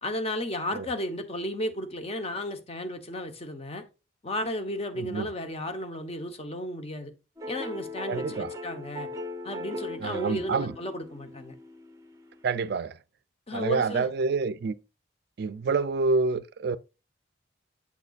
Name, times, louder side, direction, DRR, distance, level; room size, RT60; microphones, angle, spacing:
voice 1, 0.0-3.8 4.2-7.1 7.5-9.1 9.4-11.5 13.5-14.1, left 1 dB, 30° left, 0.9 m, -34 dB
voice 2, 5.0-5.3 8.1-8.5 10.0-10.7 12.4-13.0 13.5-14.7 15.4-16.8, right 4 dB, 55° right, 0.4 m, -27 dB
sound 1, 7.4-12.4, left 1 dB, 15° right, 0.7 m, -39 dB
7.3 x 6.6 x 2.4 m
head